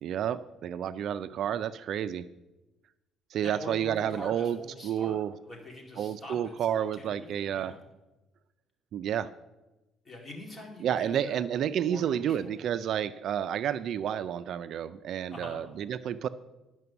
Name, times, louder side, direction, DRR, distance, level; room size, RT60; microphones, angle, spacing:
voice 1, 0.0-2.3 3.3-4.6 4.8-5.3 6.0-7.7 8.9-9.3 10.8-16.3, right 9 dB, 55° right, 13 dB, 0.3 m, -30 dB
voice 2, 3.4-5.2 5.4-7.8 10.0-12.6 15.3-15.6, left 1 dB, 15° left, 0 dB, 2.4 m, -45 dB
11.0 x 5.9 x 6.9 m, 1.0 s
cardioid pair, 145°, 0 cm